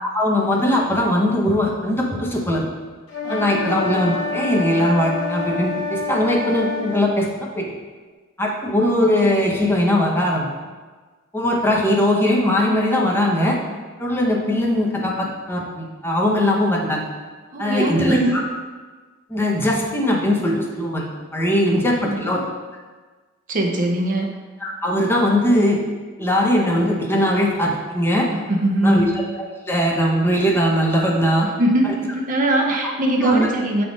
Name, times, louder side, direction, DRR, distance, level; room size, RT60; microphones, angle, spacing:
voice 1, 0.0-2.6 3.3-7.7 8.4-10.5 11.3-13.6 14.0-17.0 17.6-18.4 19.3-22.4 24.6-25.8 26.2-28.3 28.8-31.5 32.8-32.9 33.2-33.5, left 1 dB, 10° left, -2 dB, 0.8 m, -20 dB
sound 1, 3.1-7.1, left 4 dB, 75° left, 0.9 m, -27 dB
voice 2, 3.2-3.8 17.5-18.4 21.7-22.3 23.5-24.3 28.3-29.2 31.4-33.8, right 1 dB, 40° right, 1 dB, 0.6 m, -22 dB
7.4 x 3.5 x 3.9 m, 1.4 s
head